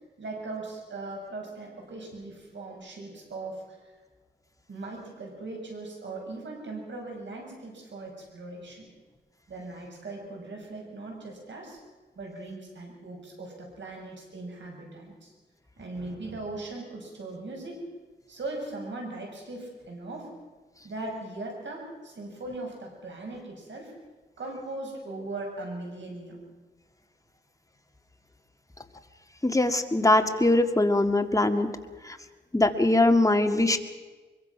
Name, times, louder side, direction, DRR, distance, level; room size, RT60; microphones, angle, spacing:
voice 1, 0.2-3.9 4.7-8.9 9.5-11.8 12.1-15.3 15.8-17.8 18.3-20.3 20.8-23.9 24.4-26.4, right 2 dB, 75° right, 0 dB, 6.5 m, -39 dB
voice 2, 29.4-31.7 32.1-32.2 32.5-33.8, left 2 dB, 15° left, 6 dB, 1.9 m, -22 dB
23.5 x 22.5 x 5.9 m, 1.3 s
wide cardioid pair, 80°, 19 cm